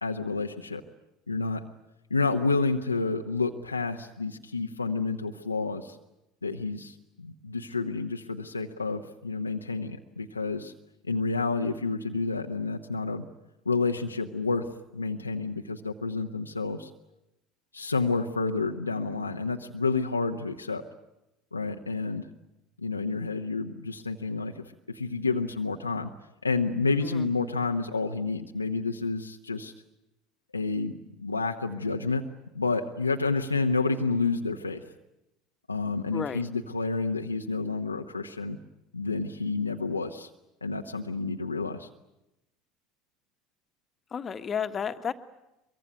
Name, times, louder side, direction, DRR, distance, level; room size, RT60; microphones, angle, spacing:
voice 1, 0.0-0.8 1.3-1.6 2.1-6.0 6.4-10.7 11.1-13.2 13.6-14.7 14.9-16.9 17.7-20.8 21.5-22.3 22.8-26.1 26.4-29.7 30.5-30.9 31.2-32.2 32.5-34.8 35.7-38.6 38.9-40.3 40.6-41.9, left 3 dB, 90° left, 3 dB, 1.0 m, -29 dB
voice 2, 36.1-36.4 44.1-45.1, left 7 dB, 30° left, 10 dB, 1.6 m, -32 dB
23.5 x 23.5 x 9.4 m, 0.91 s
figure-of-eight pair, 70°, 0 cm